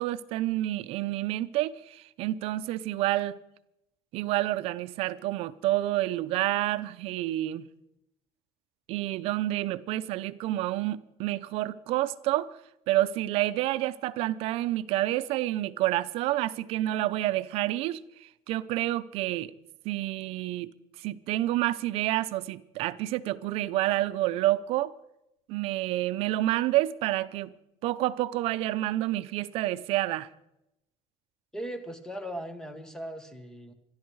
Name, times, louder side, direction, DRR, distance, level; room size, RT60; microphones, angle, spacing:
voice 1, 0.0-3.4 4.1-7.7 8.9-12.5 12.9-19.5 19.8-24.9 25.5-27.5 27.8-30.3, right 15 dB, 65° right, 0.7 m, -29 dB
voice 2, 31.5-33.7, equal, 5° left, 1.5 m, -38 dB
25.5 x 11.5 x 4.8 m
cardioid pair, 165°, 11 cm